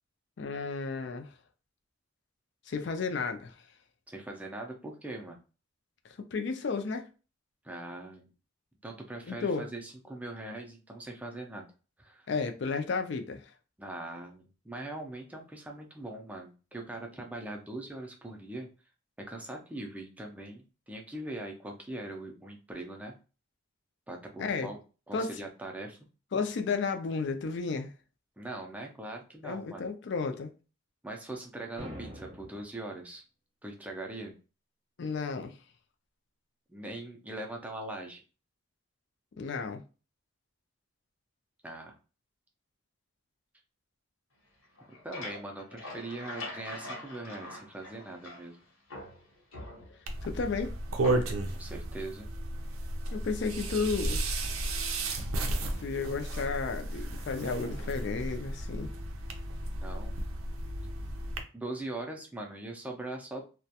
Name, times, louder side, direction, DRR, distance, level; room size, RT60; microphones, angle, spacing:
voice 1, 0.4-1.3 2.7-3.5 6.2-7.1 9.3-9.7 12.3-13.4 24.4-24.7 25.1-25.4 26.3-27.9 29.4-30.5 35.0-35.5 39.4-39.8 50.2-50.8 53.1-54.3 55.8-58.9, left 4 dB, 55° left, 0.4 m, -33 dB
voice 2, 4.1-5.4 7.6-8.3 8.8-11.7 12.0-12.3 13.8-18.7 19.2-23.1 24.1-24.8 25.1-26.0 28.4-29.8 31.0-33.2 33.6-34.3 36.7-38.2 41.6-42.0 45.0-48.6 51.5-52.3 59.8-60.2 61.5-63.4, right 2 dB, 5° right, 0.4 m, -41 dB
sound 1, 31.8-32.8, equal, 35° right, 0.7 m, -43 dB
sound 2, 44.6-48.6 48.9-50.2 51.0-51.6, left 2 dB, 75° left, 0.9 m, -43 dB
sound 3, 50.1-61.4, right 2 dB, 90° right, 0.5 m, -34 dB
2.3 x 2.1 x 2.7 m
head